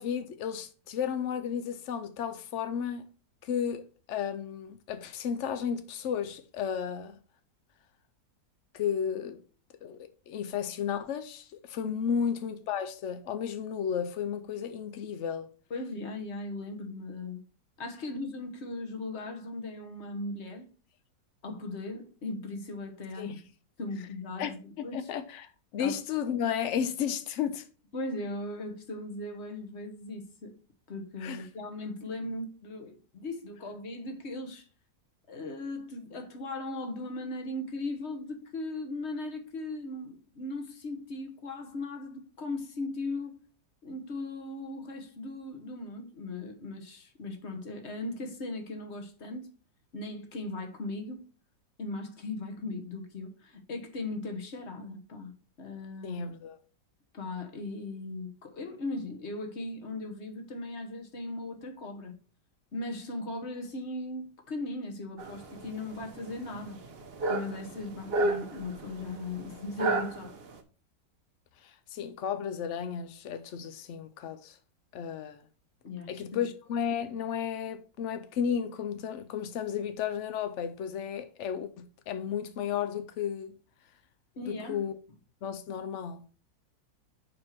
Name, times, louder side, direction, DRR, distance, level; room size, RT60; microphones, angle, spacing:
voice 1, 0.0-3.1 3.4-7.2 8.7-9.4 9.8-15.5 23.2-23.3 24.4-24.5 24.9-27.7 31.2-31.4 56.0-56.6 71.6-74.6 74.9-75.4 76.1-83.5 84.4-84.9 85.4-86.2, left 8 dB, 80° left, 0.6 m, -33 dB
voice 2, 15.7-17.4 17.8-20.7 21.4-23.4 23.8-25.1 25.8-26.0 27.9-30.5 30.9-34.7 35.3-43.4 43.8-49.5 49.9-51.2 51.8-55.3 55.6-56.2 57.1-62.1 62.7-66.8 67.3-70.3 75.8-76.2 84.3-84.8, left 2 dB, 40° left, 1.3 m, -38 dB
sound 1, 65.2-70.6, right 2 dB, 45° right, 0.8 m, -33 dB
5.1 x 4.6 x 5.7 m
omnidirectional pair, 2.0 m